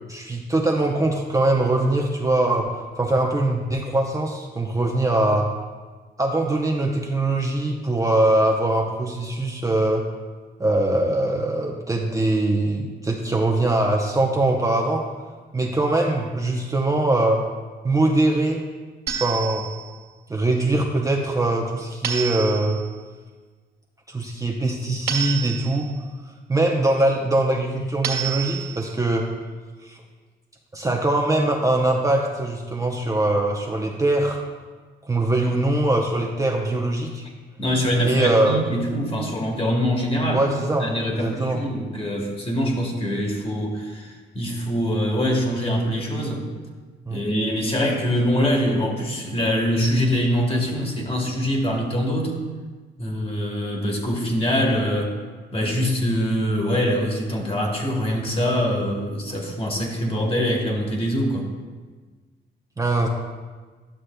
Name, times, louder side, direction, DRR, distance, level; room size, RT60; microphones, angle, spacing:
voice 1, 0.1-2.7 3.0-5.5 6.2-10.0 10.6-15.0 15.5-17.4 17.8-18.6 19.2-19.7 20.3-22.8 24.1-25.9 26.5-29.3 29.8-30.0 30.7-34.4 35.0-37.2 38.0-38.6 40.3-41.6 47.1-47.2 62.8-63.1, right 2 dB, 15° right, 0 dB, 0.6 m, -22 dB
sound 1, 19.1-20.0 22.0-22.9 25.1-26.0 28.0-29.0, right 8 dB, 55° right, 1.7 m, -29 dB
voice 2, 37.6-40.4 40.8-46.5 47.1-52.3 53.0-55.1 55.5-61.5, equal, 30° left, 0 dB, 1.4 m, -24 dB
11.5 x 6.3 x 2.2 m, 1.4 s
cardioid pair, 90°, 20 cm